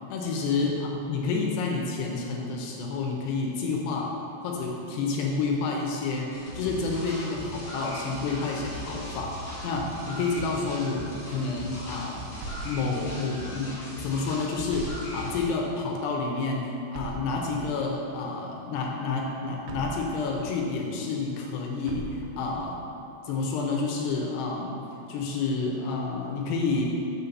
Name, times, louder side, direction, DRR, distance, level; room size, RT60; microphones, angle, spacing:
voice 1, 0.1-4.1 4.4-12.2 12.6-22.8 23.3-24.8 25.1-26.9, left 4 dB, 80° left, 0 dB, 2.7 m, -29 dB
sound 1, 6.3-15.5, equal, 40° left, 2.2 m, -39 dB
sound 2, 12.4-13.4 14.7-15.7 16.9-17.9 19.7-20.5 21.9-22.7, right 1 dB, 85° right, 2.9 m, -40 dB
6.5 x 5.5 x 6.9 m, 2.8 s
omnidirectional pair, 5.4 m